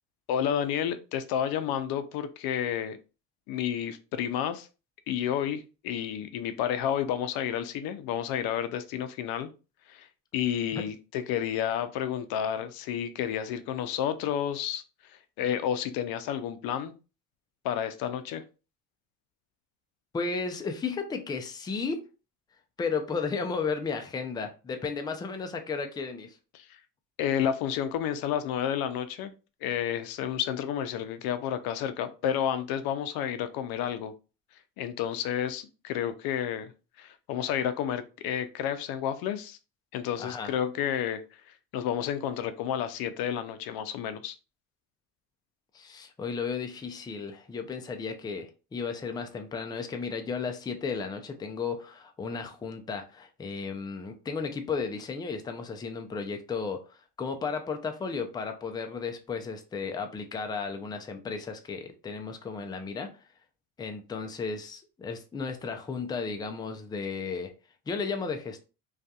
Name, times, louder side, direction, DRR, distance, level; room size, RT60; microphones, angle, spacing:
voice 1, 0.3-3.0 3.5-4.7 5.1-9.5 9.9-10.1 10.3-14.8 15.1-16.9 17.6-18.4 26.5-26.8 27.2-29.3 29.6-34.1 34.8-36.7 37.0-39.6 39.9-44.4, left 9 dB, 65° left, 0.5 m, -31 dB
voice 2, 20.1-22.0 22.8-26.4 40.2-40.5 45.7-63.2 63.8-67.5 67.9-68.6, left 5 dB, 10° left, 0.3 m, -34 dB
2.6 x 2.4 x 2.3 m
supercardioid pair, 80°, 40 cm